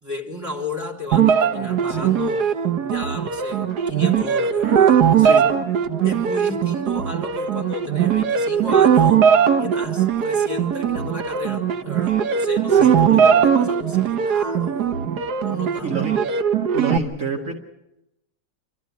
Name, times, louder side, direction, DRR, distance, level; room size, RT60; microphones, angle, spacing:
voice 1, 0.0-5.4 6.0-15.0 15.4-16.0, left 3 dB, 10° right, -2 dB, 3.5 m, -34 dB
sound 1, 1.1-17.0, right 8 dB, 75° right, 1.6 m, -19 dB
voice 2, 12.7-13.4 15.0-15.3 15.8-16.1 16.7-17.6, right 4 dB, 50° right, 0 dB, 2.2 m, -29 dB
27.0 x 13.5 x 9.5 m, 0.91 s
omnidirectional pair, 1.8 m